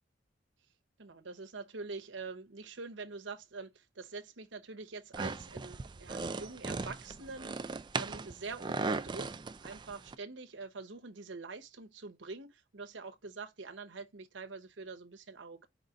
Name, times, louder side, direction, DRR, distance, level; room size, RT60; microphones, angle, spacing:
voice 1, 1.0-9.3 9.6-15.7, right 4 dB, 75° right, 0.9 m, -45 dB
sound 1, 5.1-10.2, right 4 dB, 25° right, 0.4 m, -38 dB
5.0 x 4.0 x 2.4 m
head